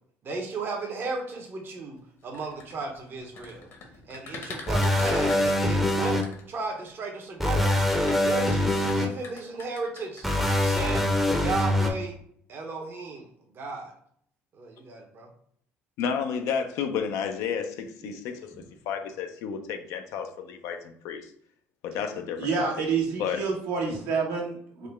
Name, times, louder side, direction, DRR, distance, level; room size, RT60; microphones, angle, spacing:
voice 1, 0.2-3.7 4.1-6.2 6.5-7.7 8.2-10.3 10.6-12.2 12.5-13.3 13.5-13.9 14.5-15.3, right 3 dB, 45° right, 1 dB, 0.7 m, -35 dB
sound 1, 2.2-6.9 7.6-10.2, left 4 dB, 55° left, 0.9 m, -42 dB
sound 2, 4.7-6.2 7.4-9.1 10.2-11.9, left 1 dB, 5° right, 0.6 m, -24 dB
voice 2, 16.0-21.3 21.8-22.7 23.2-23.4, left 7 dB, 75° left, 6 dB, 0.4 m, -31 dB
voice 3, 22.4-24.9, right 5 dB, 80° right, -2 dB, 1.2 m, -28 dB
3.7 x 2.1 x 3.3 m, 0.63 s
supercardioid pair, 95°, 5 cm